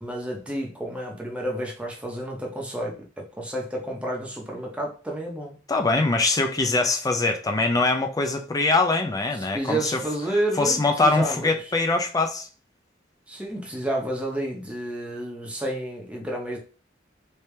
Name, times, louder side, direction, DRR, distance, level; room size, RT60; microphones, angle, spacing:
voice 1, 0.0-5.6 9.5-11.6 13.3-16.6, right 1 dB, 5° right, 0.8 m, -30 dB
voice 2, 5.7-10.0 10.6-12.5, left 3 dB, 20° left, 0.4 m, -23 dB
3.3 x 2.8 x 3.3 m
head